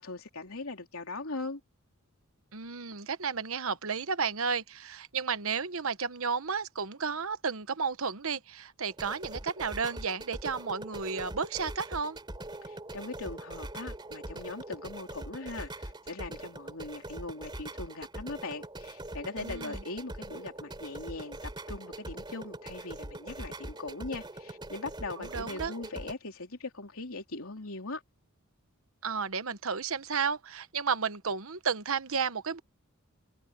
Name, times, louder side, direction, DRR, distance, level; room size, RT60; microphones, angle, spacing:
voice 1, 0.0-1.6 12.6-28.0, left 3 dB, 70° left, 3.3 m, -40 dB
voice 2, 2.5-12.2 19.4-19.8 25.2-25.7 29.0-32.6, right 5 dB, 65° right, 1.1 m, -32 dB
sound 1, 8.9-26.1, right 1 dB, 20° right, 3.3 m, -42 dB
head